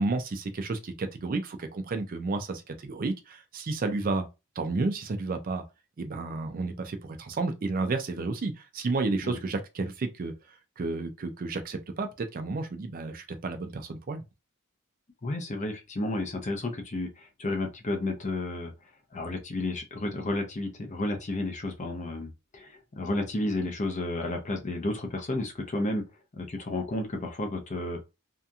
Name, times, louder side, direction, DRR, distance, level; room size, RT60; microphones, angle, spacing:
voice 1, 0.0-4.3 4.6-5.6 6.0-14.2, right 3 dB, 40° right, 0.4 m, -31 dB
voice 2, 15.2-18.7 19.1-26.0 26.3-28.0, left 2 dB, 30° left, 0.5 m, -32 dB
2.8 x 2.5 x 2.3 m
head